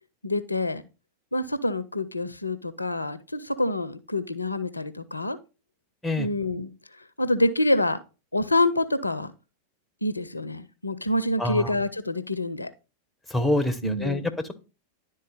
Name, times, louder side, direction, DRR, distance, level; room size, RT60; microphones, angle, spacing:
voice 1, 0.2-0.8 1.3-5.4 6.2-6.7 7.2-8.0 8.3-9.3 10.0-12.7 13.8-14.3, left 1 dB, 85° left, 0.5 m, -26 dB
voice 2, 11.4-11.7 13.3-14.5, left 1 dB, 5° left, 0.9 m, -26 dB
10.5 x 3.7 x 4.0 m
figure-of-eight pair, 90°, 0 cm